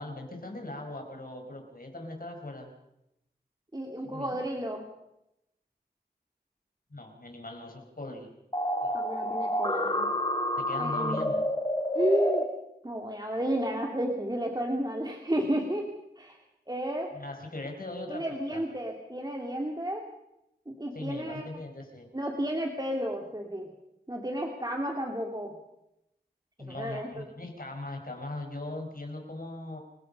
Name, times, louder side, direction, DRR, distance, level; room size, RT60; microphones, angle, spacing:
voice 1, 0.0-2.7 4.0-4.4 6.9-8.3 8.8-8.9 10.6-11.4 17.1-18.6 20.9-22.1 26.6-29.8, left 2 dB, 60° left, 2 dB, 5.1 m, -40 dB
voice 2, 3.7-4.8 8.9-10.1 10.8-11.4 11.9-12.4 12.8-15.8 16.2-16.4 16.7-17.1 18.1-20.0 20.7-21.5 22.1-23.7 24.1-25.6 26.6-27.3, right 1 dB, 25° right, 1 dB, 2.8 m, -32 dB
sound 1, 8.5-12.4, left 1 dB, 30° left, 3.4 m, -29 dB
29.0 x 16.5 x 5.5 m, 0.86 s
wide cardioid pair, 50°, 17 cm